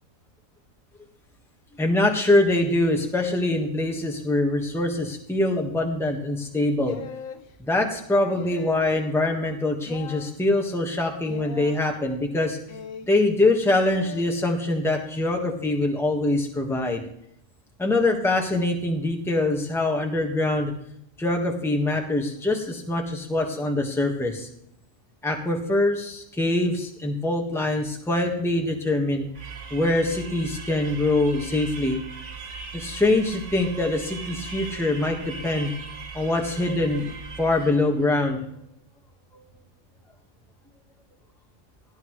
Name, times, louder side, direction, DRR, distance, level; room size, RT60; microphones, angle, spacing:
voice 1, 1.8-7.0 7.6-12.6 13.1-17.0 17.8-20.7 21.2-24.5 25.2-29.2 29.7-32.0 32.7-35.7 36.1-37.1 37.4-38.4 39.3-39.4, left 2 dB, ahead, 1 dB, 1.4 m, -24 dB
sound 1, 6.9-7.4 8.3-9.0 9.9-10.3 11.3-11.8 12.7-13.2 13.9-14.3, left 6 dB, 80° left, 1.4 m, -39 dB
sound 2, 29.3-37.9, right 5 dB, 60° right, 1.6 m, -39 dB
17.5 x 11.5 x 3.2 m, 0.73 s
omnidirectional pair, 1.4 m